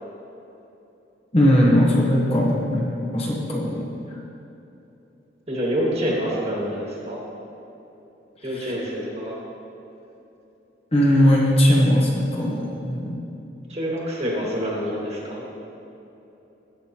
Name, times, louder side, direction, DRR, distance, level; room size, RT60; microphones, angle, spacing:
voice 1, 1.3-4.0 8.4-8.7 10.9-13.2, equal, 35° left, -3 dB, 1.2 m, -19 dB
voice 2, 5.5-7.2 8.4-9.4 13.7-15.4, equal, 35° right, -4 dB, 1.9 m, -27 dB
16.5 x 6.2 x 3.0 m, 3.0 s
head